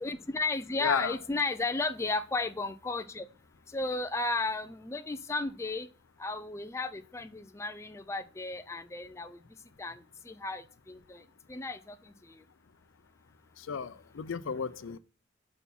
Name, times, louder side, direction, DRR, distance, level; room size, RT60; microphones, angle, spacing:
voice 1, 0.0-3.3 3.7-5.9 6.2-9.4 9.8-9.9 10.3-11.0 11.5-11.8, left 3 dB, 15° left, 0.3 m, -33 dB
voice 2, 0.8-1.2 13.7-15.0, left 6 dB, 80° left, 0.5 m, -33 dB
5.8 x 4.3 x 5.4 m
head